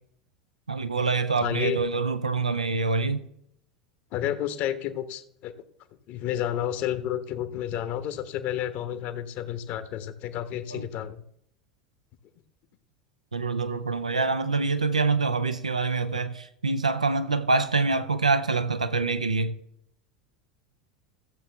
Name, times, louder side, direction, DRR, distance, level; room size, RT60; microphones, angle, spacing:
voice 1, 0.7-3.2 10.7-10.9 13.3-19.5, right 3 dB, 90° right, 0.6 m, -25 dB
voice 2, 1.4-1.8 4.1-5.5 6.1-11.2, left 11 dB, 50° left, 1.1 m, -31 dB
15.0 x 7.6 x 3.4 m
figure-of-eight pair, 80°, 4 cm